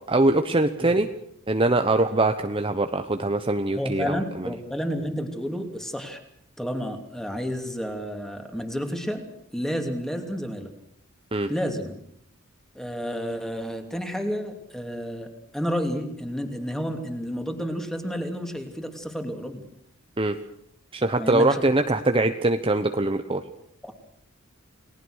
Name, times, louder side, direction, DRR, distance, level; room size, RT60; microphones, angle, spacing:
voice 1, 0.1-1.1 1.5-4.5 11.3-11.5 20.2-20.4 20.9-23.4, right 2 dB, 25° right, 6 dB, 1.0 m, -23 dB
voice 2, 3.7-6.2 6.6-10.7 11.5-12.0 12.7-15.3 15.5-19.6 21.2-21.6 23.8-23.9, equal, ahead, 4 dB, 2.9 m, -30 dB
29.5 x 19.5 x 6.5 m, 0.70 s
head